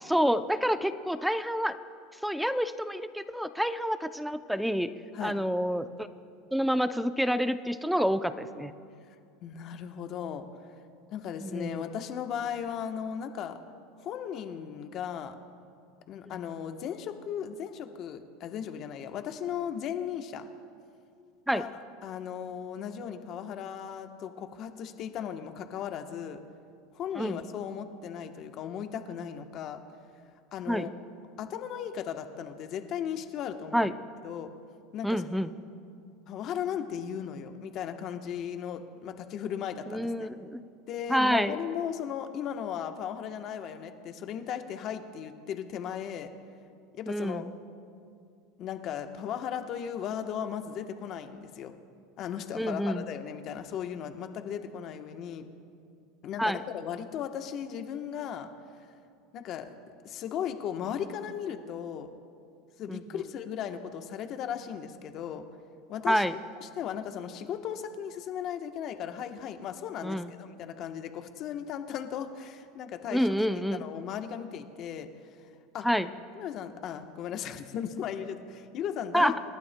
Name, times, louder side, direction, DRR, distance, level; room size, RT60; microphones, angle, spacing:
voice 1, 0.0-1.8 2.2-4.9 5.2-6.1 6.5-8.7 11.4-11.8 16.3-16.4 21.5-21.7 27.2-27.4 30.7-30.9 33.7-33.9 35.0-35.5 39.9-40.6 41.1-41.6 47.1-47.5 52.5-53.1 56.4-56.6 62.9-63.2 66.1-66.3 70.0-70.3 73.1-73.9 75.8-76.1 79.1-79.3, equal, ahead, 11 dB, 0.5 m, -28 dB
voice 2, 9.4-10.5 11.1-13.6 14.0-15.4 16.1-20.5 21.5-21.7 22.0-26.4 26.9-29.8 30.5-30.9 31.4-33.9 34.2-34.5 34.9-35.2 36.3-40.3 40.9-46.3 46.9-47.4 48.6-51.7 52.2-55.4 56.2-58.5 59.3-59.7 60.0-62.1 62.8-65.4 65.9-66.2 66.6-73.3 73.7-75.1 75.7-75.9 76.3-79.3, left 8 dB, 45° left, 6 dB, 1.0 m, -36 dB
28.0 x 11.5 x 2.2 m, 2.4 s
supercardioid pair, 120°, 0 cm